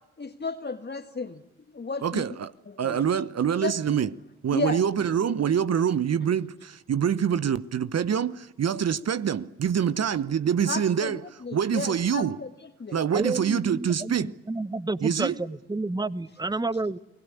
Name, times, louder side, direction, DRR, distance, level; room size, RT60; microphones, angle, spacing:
voice 1, 0.2-1.4 1.7-2.3 2.7-3.0 3.6-3.8 4.5-4.8 10.7-12.5 12.8-13.0, left 4 dB, 30° left, 1.7 m, -33 dB
voice 2, 2.0-2.5 2.8-4.1 4.4-11.2 11.5-12.4 12.9-14.3 15.0-15.3, right 8 dB, 45° right, 1.0 m, -25 dB
voice 3, 13.1-17.0, right 2 dB, 10° right, 1.0 m, -30 dB
29.5 x 21.0 x 8.4 m
hypercardioid pair, 40°, 35 cm